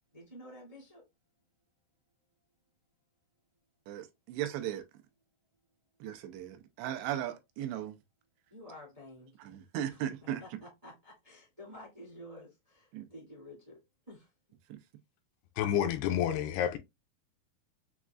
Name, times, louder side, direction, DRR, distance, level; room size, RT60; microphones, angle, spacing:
voice 1, 0.1-1.0 8.5-9.3 9.9-10.0 10.4-13.8 14.1-14.3, left 1 dB, 30° right, 0.7 m, -50 dB
voice 2, 3.9-4.8 6.0-8.0 9.4-10.4 12.9-13.1 14.7-14.8, right 11 dB, 90° right, 2.8 m, -37 dB
voice 3, 15.6-16.8, left 10 dB, 85° left, 2.4 m, -29 dB
7.1 x 2.4 x 2.3 m
omnidirectional pair, 4.8 m